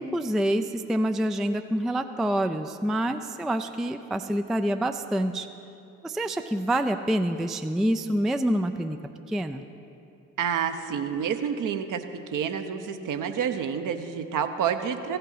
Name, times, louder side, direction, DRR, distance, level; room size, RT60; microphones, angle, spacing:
voice 1, 0.0-5.5 6.0-9.0 9.3-9.6, right 1 dB, ahead, 8 dB, 0.3 m, -27 dB
voice 2, 10.4-15.2, right 7 dB, 50° right, 7 dB, 0.8 m, -29 dB
16.0 x 5.6 x 4.0 m, 2.7 s
figure-of-eight pair, 40°, 40 cm